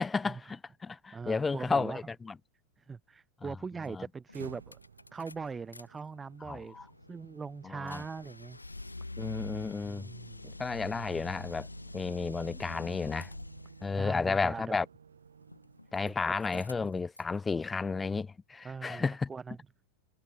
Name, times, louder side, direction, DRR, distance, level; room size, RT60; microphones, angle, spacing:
voice 1, 0.0-2.3 3.4-3.5 3.9-4.1 6.5-6.8 7.6-8.0 9.2-10.1 10.6-11.7 11.9-13.3 13.8-14.9 15.9-19.3, left 4 dB, 15° left, 0.6 m, -32 dB
voice 2, 1.1-2.0 2.8-4.8 5.1-8.6 9.8-10.5 13.9-14.8 16.1-16.9 18.6-19.0 19.3-19.6, right 5 dB, 15° right, 2.4 m, -41 dB
sound 1, 3.8-3.9 4.3-5.8 6.2-13.9 15.4-16.1 16.4-17.4, left 2 dB, 85° left, 5.3 m, -46 dB
sound 2, 4.3-16.3, right 7 dB, 70° right, 3.8 m, -55 dB
figure-of-eight pair, 90°, 0 cm